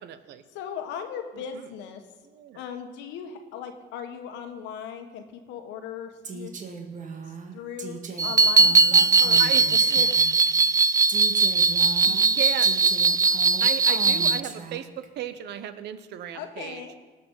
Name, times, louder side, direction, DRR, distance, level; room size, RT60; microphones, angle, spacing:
voice 1, 0.0-0.4 1.3-1.7 2.2-2.6 9.4-10.0 12.0-12.7 13.6-16.8, right 10 dB, 75° right, 12 dB, 1.0 m, -36 dB
voice 2, 0.5-2.0 2.5-6.5 7.5-9.4 9.9-10.1 16.3-17.0, left 8 dB, 90° left, 6 dB, 1.5 m, -38 dB
Female speech woman speaking, 6.2-10.5 11.1-15.1, right 5 dB, 45° right, 1.7 m, -38 dB
sound 1, 8.2-14.4, right 4 dB, 20° right, 0.3 m, -20 dB
19.0 x 6.8 x 5.6 m, 1.3 s
cardioid pair, 90°, 18 cm